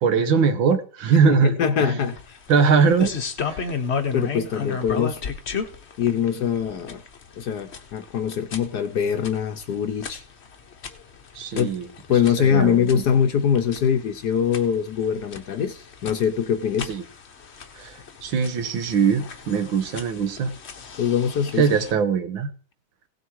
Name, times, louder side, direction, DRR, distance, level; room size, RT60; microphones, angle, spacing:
voice 1, 0.0-2.0 2.5-3.1 3.5-3.7 11.4-11.9 12.4-13.0 16.9-17.0 17.7-20.5 21.6-22.5, right 6 dB, 70° right, 10 dB, 1.8 m, -21 dB
voice 2, 1.3-2.4 4.1-5.2 6.0-7.0 7.4-10.2 11.5-11.7 12.1-16.9 21.0-21.6, left 8 dB, 60° left, 9 dB, 1.2 m, -23 dB
sound 1, 2.0-21.9, left 5 dB, 40° left, 1.0 m, -35 dB
17.0 x 6.9 x 4.7 m, 0.42 s
omnidirectional pair, 2.3 m